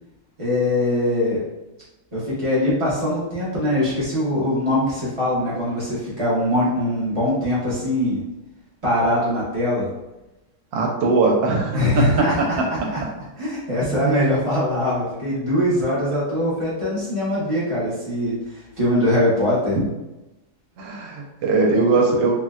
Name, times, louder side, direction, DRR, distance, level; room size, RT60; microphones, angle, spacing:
voice 1, 0.4-1.4 2.1-8.2 8.8-9.9 11.7-12.6 12.9-13.0 13.4-19.8, left 1 dB, 60° right, -9 dB, 0.3 m, -22 dB
voice 2, 10.7-11.9 20.8-22.3, right 3 dB, 80° right, 0 dB, 1.3 m, -20 dB
3.9 x 2.1 x 2.3 m, 1.0 s
omnidirectional pair, 2.1 m